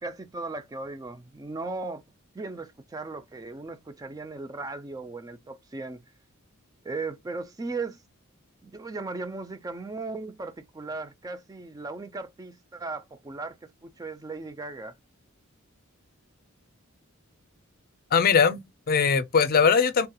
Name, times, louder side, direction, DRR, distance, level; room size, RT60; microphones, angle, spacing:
voice 1, 0.0-2.0 2.3-6.0 6.8-8.0 8.6-13.6 13.8-14.9, right 3 dB, 15° right, 0.3 m, -37 dB
voice 2, 18.1-20.1, left 6 dB, 45° left, 0.5 m, -21 dB
3.5 x 2.8 x 2.2 m
head